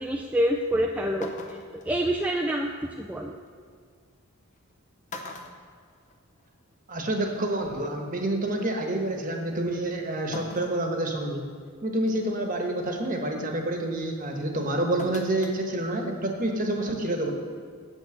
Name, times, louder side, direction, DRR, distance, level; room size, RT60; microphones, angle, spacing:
voice 1, 0.0-1.6 1.9-3.4, equal, 5° right, 0 dB, 0.3 m, -27 dB
sound 1, 0.7-0.8 1.2-1.9 3.5-3.6 4.5-4.7 5.1-6.5 6.8-6.9 8.1-8.2 10.3-10.8 11.4-11.5 12.1-12.4 15.0-15.6 15.9-16.0, left 2 dB, 35° left, 0.7 m, -41 dB
voice 2, 6.9-11.5 11.8-17.3, right 1 dB, 40° right, 2 dB, 1.2 m, -28 dB
8.5 x 7.7 x 6.5 m, 2.1 s
head